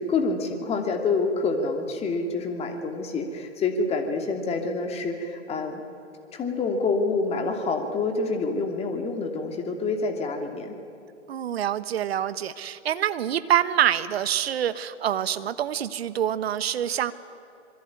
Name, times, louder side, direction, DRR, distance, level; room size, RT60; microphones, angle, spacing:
voice 1, 0.0-5.8 6.3-10.7, left 3 dB, 15° left, 4 dB, 2.7 m, -27 dB
voice 2, 11.3-17.1, right 10 dB, 55° right, 14 dB, 1.4 m, -26 dB
26.0 x 23.0 x 9.6 m, 2.8 s
figure-of-eight pair, 125°, 37 cm